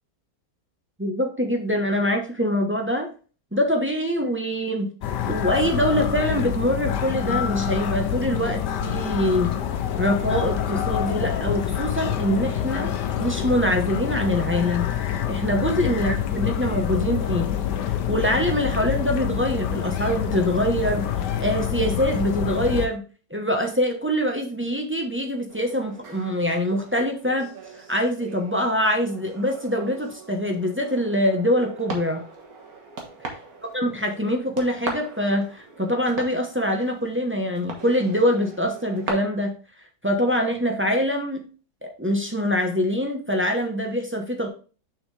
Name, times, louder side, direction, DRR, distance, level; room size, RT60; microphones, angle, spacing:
voice 1, 1.0-3.1 3.5-4.9 5.3-9.5 10.0-14.9 15.3-17.5 18.1-23.0 23.3-27.5 27.9-32.2 33.7-39.5 40.0-41.5 41.8-44.5, equal, 10° right, 2 dB, 0.7 m, -24 dB
sound 1, 5.0-22.9, left 9 dB, 85° left, 1.4 m, -26 dB
sound 2, 25.5-39.1, right 3 dB, 60° right, 1.9 m, -40 dB
6.4 x 6.2 x 3.3 m, 0.38 s
omnidirectional pair, 1.8 m